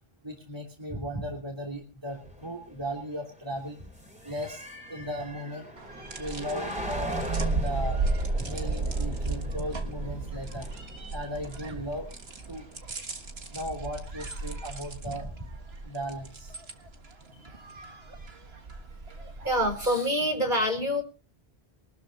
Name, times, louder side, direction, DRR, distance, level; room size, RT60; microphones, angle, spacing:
voice 1, 0.2-3.8 4.2-4.6 4.9-5.7 6.2-8.0 8.4-10.7 11.1-12.1 12.5-12.6 13.5-15.3 15.8-16.5, equal, 25° right, -1 dB, 3.0 m, -36 dB
sound 1, 2.1-12.8, equal, 5° right, 3.5 m, -41 dB
sound 2, 5.8-19.9, right 3 dB, 80° right, 1.9 m, -34 dB
voice 2, 19.4-21.0, equal, 50° right, 4 dB, 4.6 m, -26 dB
23.0 x 12.5 x 2.8 m, 0.34 s
omnidirectional pair, 1.0 m